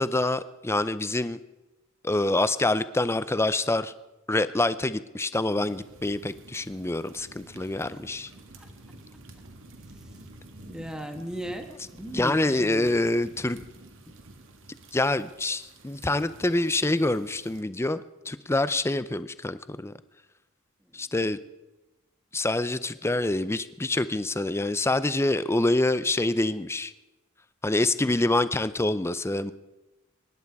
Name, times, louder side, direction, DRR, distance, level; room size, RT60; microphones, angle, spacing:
voice 1, 0.0-1.4 2.0-3.9 4.3-8.3 12.1-13.6 14.9-19.9 20.9-21.4 22.3-26.9 27.6-29.5, left 2 dB, 10° left, 14 dB, 0.5 m, -26 dB
sound 1, 5.5-17.6, right 2 dB, 65° right, 1.9 m, -50 dB
voice 2, 10.6-11.7 12.0-12.9 20.9-21.0, equal, 5° right, 5 dB, 1.5 m, -36 dB
25.0 x 11.0 x 4.7 m, 1.0 s
head